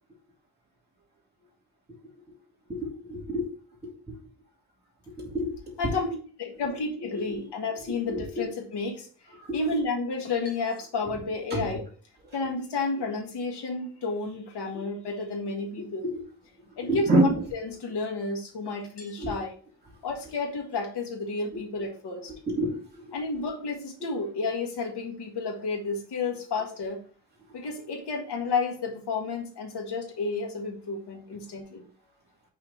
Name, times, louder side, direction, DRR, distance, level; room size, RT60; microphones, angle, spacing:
voice 1, 2.7-3.5 3.8-3.9 5.2-5.7 7.1-7.4 7.9-8.4 9.5-9.6 11.5-11.7 14.7-14.9 15.8-16.2 16.8-17.3 19.2-19.3 22.5-23.1, right 1 dB, 25° right, -4 dB, 2.4 m, -28 dB
voice 2, 5.8-9.1 9.5-11.8 12.3-16.1 16.8-19.5 20.0-22.3 23.1-27.0 27.5-31.8, left 3 dB, 85° left, 1 dB, 1.8 m, -31 dB
5.7 x 3.8 x 4.9 m, 0.42 s
wide cardioid pair, 175°, 39 cm